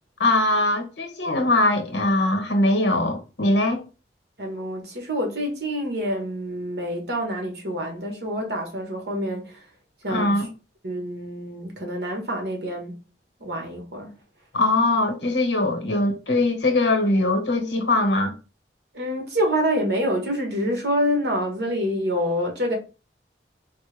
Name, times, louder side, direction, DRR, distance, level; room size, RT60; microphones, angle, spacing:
voice 1, 0.2-3.8 10.1-10.5 14.5-18.3, left 2 dB, 85° left, 1.0 m, -21 dB
voice 2, 4.4-9.6 10.0-10.5 10.8-13.0 13.4-14.1 18.9-22.8, equal, 65° right, 1.2 m, -27 dB
4.3 x 2.1 x 3.2 m
head